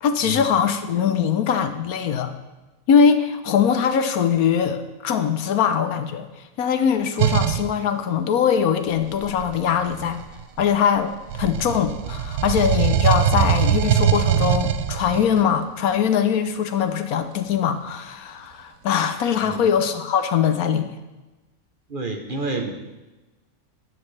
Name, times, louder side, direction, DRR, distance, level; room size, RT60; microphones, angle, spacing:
voice 1, 0.0-2.3 2.9-6.3 6.6-10.2 10.6-20.9, left 7 dB, 85° left, 9 dB, 1.3 m, -21 dB
sound 1, 7.2-7.7 9.0-10.9 11.3-15.4, right 10 dB, 75° right, 1.0 m, -22 dB
voice 2, 21.9-22.7, right 3 dB, 40° right, 4 dB, 1.0 m, -29 dB
13.5 x 9.5 x 3.3 m, 1.1 s
omnidirectional pair, 1.5 m